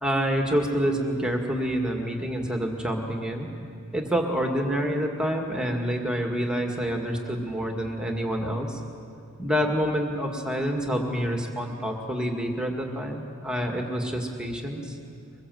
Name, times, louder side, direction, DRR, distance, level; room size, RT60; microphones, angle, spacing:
voice 1, 0.0-3.5 3.9-8.8 9.4-15.0, equal, 5° right, 2 dB, 2.0 m, -27 dB
23.5 x 21.5 x 7.9 m, 2.4 s
head